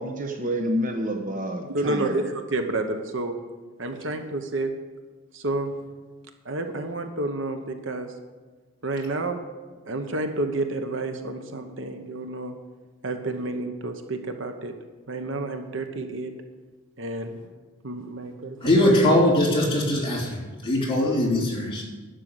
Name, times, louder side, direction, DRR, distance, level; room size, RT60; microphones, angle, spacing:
voice 1, 0.0-2.2, equal, 40° right, 3 dB, 1.0 m, -28 dB
voice 2, 1.7-3.4 3.8-4.7 5.3-5.7 6.4-8.1 8.8-9.4 9.9-12.5 13.0-14.7 15.1-16.3 17.0-17.4 17.8-18.8, right 2 dB, 65° right, 6 dB, 1.0 m, -30 dB
voice 3, 18.6-20.4 20.6-21.8, left 1 dB, 25° left, -4 dB, 3.1 m, -21 dB
11.5 x 6.7 x 7.9 m, 1.3 s
head